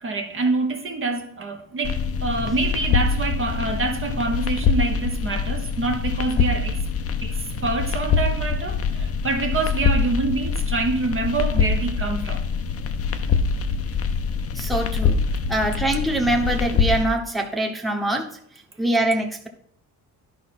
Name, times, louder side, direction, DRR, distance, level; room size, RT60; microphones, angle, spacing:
voice 1, 0.0-6.9 7.2-12.4, right 3 dB, 30° right, 0.9 m, -26 dB
sound 1, 1.8-17.0, left 5 dB, 35° left, 0.7 m, -24 dB
voice 2, 14.5-15.2 15.5-18.4 18.8-19.5, right 1 dB, ahead, 1.0 m, -23 dB
11.5 x 5.4 x 4.2 m
cardioid pair, 140°, 39 cm